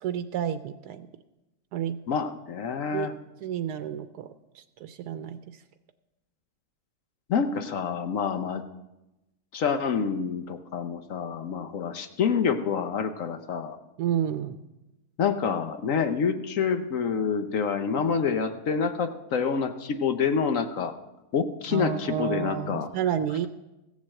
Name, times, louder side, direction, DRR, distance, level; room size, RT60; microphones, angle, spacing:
voice 1, 0.0-1.1 1.7-2.0 2.9-3.1 3.4-4.3 4.5-5.4 14.0-14.6 21.7-23.5, right 9 dB, 90° right, 10 dB, 1.2 m, -30 dB
voice 2, 2.1-3.1 7.3-8.6 9.5-13.8 15.2-20.9 21.3-22.9, left 6 dB, 60° left, 8 dB, 1.1 m, -27 dB
15.5 x 7.3 x 7.5 m, 0.98 s
omnidirectional pair, 1.6 m